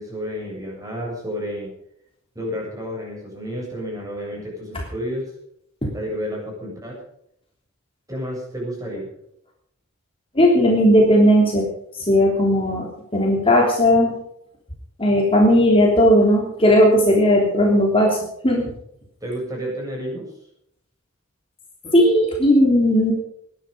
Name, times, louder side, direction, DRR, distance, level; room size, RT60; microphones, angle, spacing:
voice 1, 0.0-1.7 2.3-5.2 5.9-7.0 8.1-9.1 19.2-20.3, equal, 15° right, -2 dB, 7.8 m, -30 dB
voice 2, 10.3-11.7 11.9-12.9 13.1-14.1 15.0-18.2 18.4-18.7 21.9-23.1, equal, 25° left, -1 dB, 3.2 m, -16 dB
21.0 x 10.5 x 5.3 m, 0.72 s
head